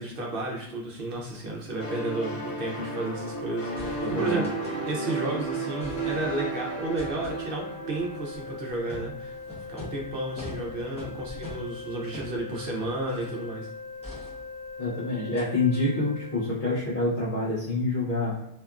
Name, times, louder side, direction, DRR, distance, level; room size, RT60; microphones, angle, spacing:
voice 1, 0.0-4.6 4.9-9.4 9.7-13.7, right 2 dB, 60° right, -2 dB, 0.7 m, -32 dB
sound 1, 1.8-9.3, right 2 dB, 80° left, 1.0 m, -34 dB
sound 2, 3.8-5.3 5.6-6.5 7.0-13.5 14.0-14.9 15.3-15.5 15.7-15.8, left 2 dB, 10° left, 0.6 m, -44 dB
voice 2, 4.0-4.5 14.8-18.3, left 2 dB, 55° left, -8 dB, 0.7 m, -27 dB
sound 3, 6.8-16.5, left 4 dB, 35° right, 0.4 m, -41 dB
2.8 x 2.3 x 2.3 m, 0.81 s
omnidirectional pair, 1.1 m